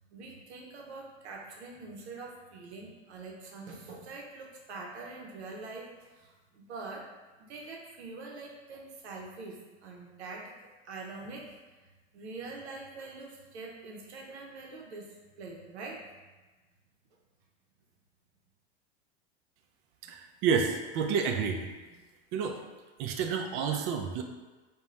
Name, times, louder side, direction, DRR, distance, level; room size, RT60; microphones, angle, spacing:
voice 1, 0.1-7.1 7.4-10.5 10.8-11.5 12.1-15.1 15.4-16.0, right 3 dB, 80° right, -1 dB, 0.7 m, -44 dB
voice 2, 20.1-21.7 22.3-22.6 23.0-24.2, right 6 dB, 45° right, 3 dB, 0.4 m, -29 dB
2.5 x 2.3 x 3.0 m, 1.2 s
hypercardioid pair, 95°, 33 cm